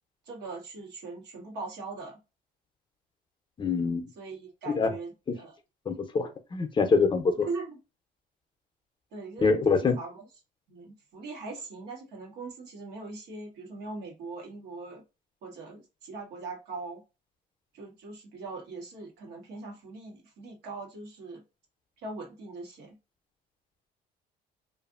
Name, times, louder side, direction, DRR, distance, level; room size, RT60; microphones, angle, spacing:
voice 1, 0.3-2.2 4.2-5.6 7.4-7.8 9.1-9.5 9.8-10.2 10.7-15.0 15.4-17.0 17.7-21.4 22.0-23.0, right 3 dB, 85° right, 1.1 m, -41 dB
voice 2, 3.6-4.1 4.7-4.9 5.9-7.5 9.4-10.0, left 4 dB, 30° left, 0.5 m, -25 dB
2.6 x 2.5 x 2.4 m
cardioid pair, 110°, 17 cm